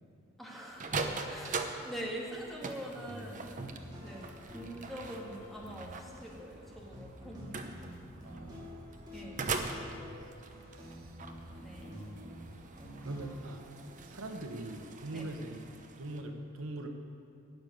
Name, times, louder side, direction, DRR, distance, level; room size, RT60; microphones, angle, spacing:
voice 1, 0.4-1.0 1.3-3.5 4.0-4.3 4.5-7.6 9.1-9.6 11.6-12.0 15.1-15.3, right 1 dB, ahead, -4 dB, 1.9 m, -44 dB
sound 1, 0.7-16.2, right 3 dB, 40° right, 0.8 m, -42 dB
sound 2, 3.0-13.5, equal, 20° right, 2.2 m, -49 dB
voice 2, 8.2-9.6 10.0-10.3 10.7-11.2 13.0-13.6 14.1-15.6 16.0-16.9, right 1 dB, 90° right, 5 dB, 1.1 m, -43 dB
11.5 x 7.1 x 9.2 m, 2.6 s
head